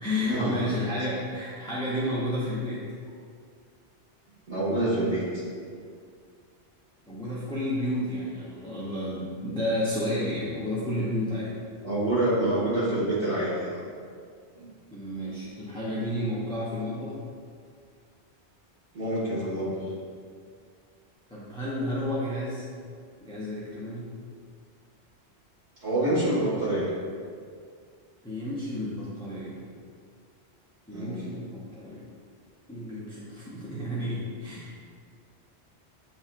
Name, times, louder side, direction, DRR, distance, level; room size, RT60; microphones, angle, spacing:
voice 1, 0.0-2.8 7.1-11.5 14.9-17.2 21.3-22.7 23.2-24.1 28.2-29.6 30.9-32.1 32.7-34.7, left 1 dB, 5° left, -8 dB, 0.5 m, -31 dB
voice 2, 4.5-5.4 11.8-13.8 14.6-14.7 18.9-19.7 25.8-26.9 30.9-31.2, right 1 dB, 85° right, -9 dB, 2.0 m, -26 dB
7.1 x 2.8 x 2.4 m, 2.1 s
omnidirectional pair, 1.1 m